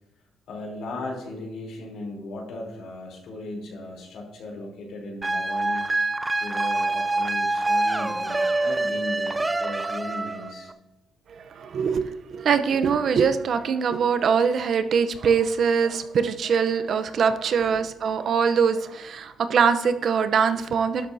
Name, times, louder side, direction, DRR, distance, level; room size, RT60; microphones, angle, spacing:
voice 1, 0.5-5.8 6.4-10.7 17.7-17.8, left 2 dB, 80° left, -1 dB, 3.3 m, -37 dB
sound 1, 5.2-10.7, right 2 dB, 15° right, 0.5 m, -26 dB
voice 2, 11.3-21.1, right 6 dB, 60° right, 10 dB, 0.7 m, -23 dB
12.0 x 10.5 x 2.7 m, 0.98 s
cardioid pair, 90°, 0 cm